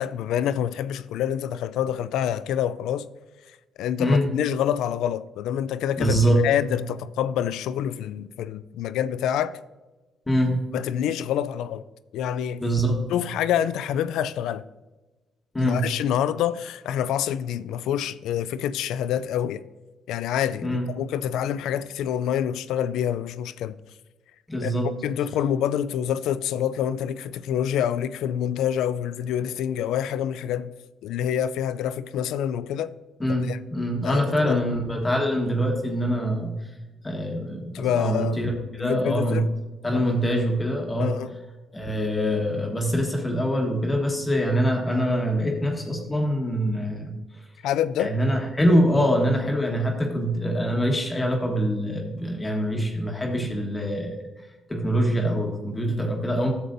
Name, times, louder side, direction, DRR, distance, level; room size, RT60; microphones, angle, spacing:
voice 1, 0.0-3.1 3.8-6.2 6.4-9.6 10.7-11.8 12.1-12.6 13.1-14.6 15.6-19.6 20.1-23.7 24.6-24.7 25.0-30.7 31.0-32.9 33.4-33.6 34.0-34.7 37.7-38.5 38.8-39.5 39.9-40.2 41.0-41.3 47.6-48.2, left 10 dB, 85° left, 0.3 m, -27 dB
voice 2, 6.0-6.5 10.3-10.6 12.6-13.0 15.5-15.9 20.6-20.9 24.5-24.9 33.2-36.6 37.0-38.5 38.8-39.5 39.8-41.2 41.7-47.2 48.0-54.2 54.7-56.5, equal, 20° left, 1.3 m, -24 dB
11.5 x 6.9 x 2.6 m
cardioid pair, 90°, 0 cm